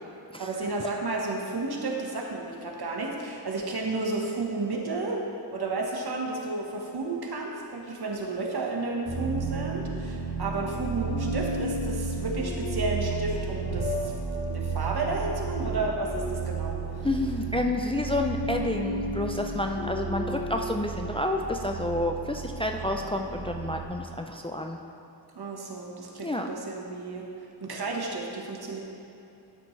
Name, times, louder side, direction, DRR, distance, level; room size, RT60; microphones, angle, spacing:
voice 1, 0.4-5.2 5.5-14.1 14.4-17.1 23.4-23.5 25.3-28.8, right 3 dB, 65° right, -1 dB, 1.3 m, -32 dB
sound 1, 9.1-23.8, right 5 dB, 45° right, 1.3 m, -34 dB
sound 2, 11.1-21.4, left 3 dB, 80° left, 1.8 m, -37 dB
voice 2, 17.0-24.8 26.2-26.5, left 1 dB, 15° left, 3 dB, 0.4 m, -29 dB
12.5 x 6.0 x 3.2 m, 2.8 s
wide cardioid pair, 85°, 41 cm